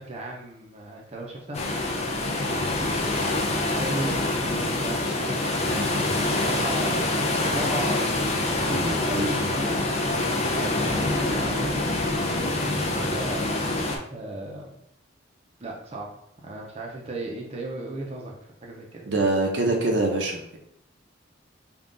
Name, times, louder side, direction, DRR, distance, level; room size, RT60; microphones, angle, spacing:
voice 1, 0.0-1.8 2.4-2.9 3.3-4.1 4.4-13.7 14.1-14.7 15.6-16.1 16.4-19.1, right 1 dB, 35° right, -1 dB, 0.6 m, -36 dB
sound 1, 1.5-14.0, left 2 dB, 35° left, 0.6 m, -25 dB
voice 2, 19.1-20.6, right 2 dB, 65° right, 1 dB, 0.7 m, -24 dB
3.6 x 2.3 x 3.8 m, 0.70 s
head